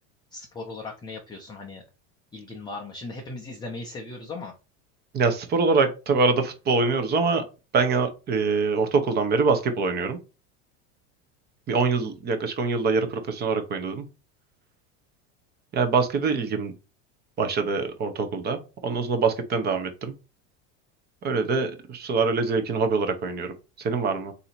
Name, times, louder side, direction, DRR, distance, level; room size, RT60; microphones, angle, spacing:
voice 1, 0.3-1.8 2.3-4.5, left 3 dB, 10° left, 0 dB, 0.5 m, -38 dB
voice 2, 5.1-7.4 7.7-10.2 11.7-14.0 15.7-16.7 17.4-20.1 21.2-24.3, right 4 dB, 25° right, 7 dB, 0.7 m, -24 dB
3.9 x 2.8 x 4.3 m, 0.31 s
supercardioid pair, 145°, 38 cm